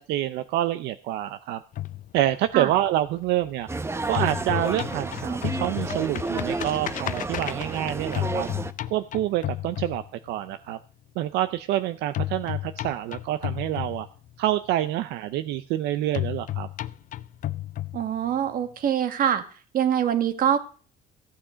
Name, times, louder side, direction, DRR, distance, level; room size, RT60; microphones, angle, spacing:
voice 1, 0.0-1.6 2.1-3.7 4.1-8.5 8.9-10.8 11.2-14.1 14.4-16.7, right 13 dB, 85° right, 11 dB, 0.7 m, -27 dB
sound 1, 1.7-3.7 4.0-10.5 12.1-14.5 16.1-18.5, left 14 dB, 50° left, 0.6 m, -33 dB
sound 2, 3.7-8.7, right 3 dB, 15° right, 0.8 m, -31 dB
voice 2, 17.9-19.4 19.7-20.6, right 9 dB, 55° right, 9 dB, 1.7 m, -24 dB
15.5 x 8.8 x 5.1 m, 0.41 s
cardioid pair, 110°, 17 cm